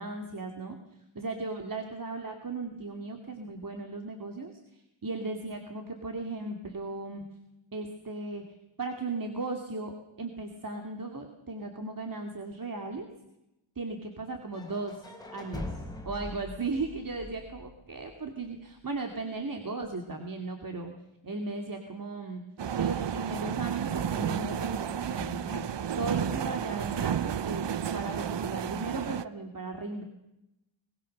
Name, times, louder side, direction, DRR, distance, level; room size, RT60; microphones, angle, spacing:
voice 1, 0.0-7.2 7.7-13.1 13.8-15.1 15.3-20.9 21.2-22.4 22.8-25.6 26.0-27.7 27.9-30.0, right 3 dB, 40° right, 4 dB, 2.6 m, -36 dB
sound 1, 14.5-18.4, left 1 dB, 10° left, 4.3 m, -42 dB
sound 2, 22.6-29.2, right 8 dB, 60° right, 0.8 m, -32 dB
23.5 x 21.5 x 6.6 m, 0.90 s
wide cardioid pair, 100°, 49 cm